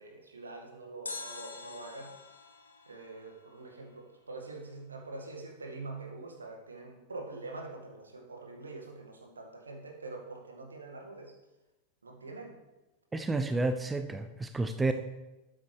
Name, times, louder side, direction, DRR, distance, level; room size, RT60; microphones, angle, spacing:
voice 1, 0.0-2.1 2.9-11.3 12.0-12.6, right 3 dB, 75° right, 1 dB, 1.9 m, -44 dB
sound 1, 1.1-4.1 4.4-4.5, left 3 dB, 75° left, 1.2 m, -46 dB
voice 2, 13.1-14.9, right 2 dB, 10° right, 8 dB, 0.6 m, -30 dB
12.5 x 8.9 x 3.3 m, 1.1 s
figure-of-eight pair, 90°, 0 cm